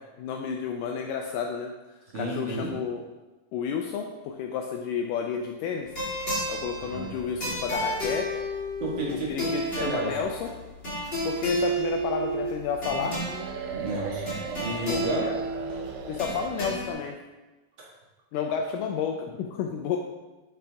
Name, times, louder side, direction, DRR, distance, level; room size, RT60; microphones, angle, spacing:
voice 1, 0.2-3.0 3.5-5.9 6.5-8.4 9.3-10.5 11.2-13.2 15.1-15.4 16.1-17.2 18.3-20.0, left 6 dB, 90° left, 3 dB, 1.8 m, -31 dB
voice 2, 2.1-2.7 6.8-7.2 8.8-10.2 13.7-15.3 17.8-17.9, right 2 dB, 45° right, -5 dB, 1.6 m, -32 dB
sound 1, 5.8-16.9, equal, 20° left, 1.7 m, -32 dB
sound 2, 12.9-17.1, right 7 dB, 80° right, 1.8 m, -38 dB
7.0 x 5.9 x 3.4 m, 1.1 s
omnidirectional pair, 4.3 m